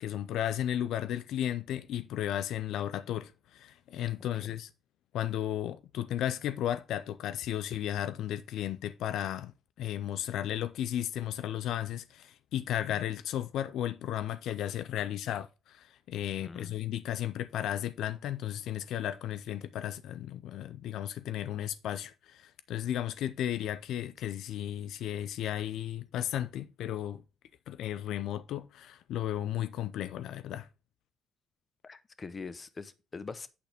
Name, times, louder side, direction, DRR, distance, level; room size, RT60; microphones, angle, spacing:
voice 1, 0.0-4.7 5.1-9.5 9.8-27.2 27.7-30.7, left 11 dB, 85° left, 0.4 m, -34 dB
voice 2, 16.4-16.8 31.8-33.5, left 4 dB, 35° left, 0.8 m, -43 dB
8.5 x 4.2 x 5.0 m
cardioid pair, 90°, 0 cm